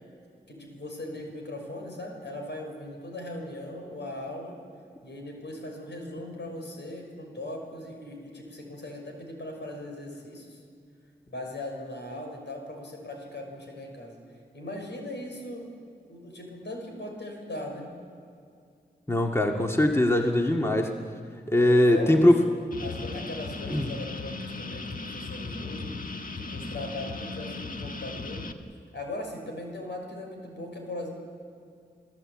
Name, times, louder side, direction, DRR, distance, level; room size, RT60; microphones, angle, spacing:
voice 1, 0.5-4.6 5.0-10.6 11.3-14.2 14.5-15.7 16.1-17.9 21.9-28.4 28.9-31.1, left 1 dB, 75° left, 2 dB, 5.8 m, -39 dB
voice 2, 19.1-20.9 21.5-22.4 23.7-23.9, left 1 dB, 15° left, 2 dB, 2.0 m, -21 dB
sound 1, 22.7-28.5, left 3 dB, 50° left, 1.6 m, -37 dB
29.0 x 17.0 x 8.8 m, 2.4 s
wide cardioid pair, 65°, 18 cm